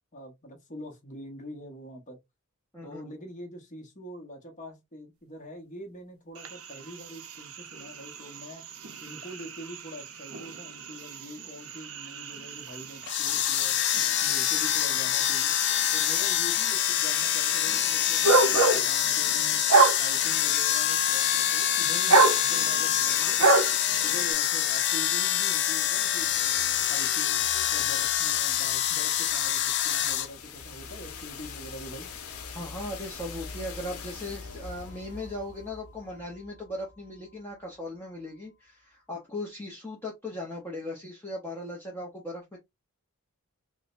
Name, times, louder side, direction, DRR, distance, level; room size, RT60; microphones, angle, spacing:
voice 1, 0.1-2.2 2.8-8.6 9.0-13.8 14.2-15.5 15.9-19.6 20.0-23.6 24.0-32.1, equal, 35° left, 1.1 m, -44 dB
voice 2, 2.7-3.2 22.1-22.2 32.5-42.6, left 1 dB, 10° left, 0.8 m, -38 dB
sound 1, 6.3-24.3, right 3 dB, 70° right, 0.7 m, -29 dB
sound 2, 13.0-30.3, left 11 dB, 50° left, 0.4 m, -26 dB
sound 3, 25.9-37.8, left 5 dB, 80° left, 0.8 m, -44 dB
4.8 x 2.2 x 2.5 m
head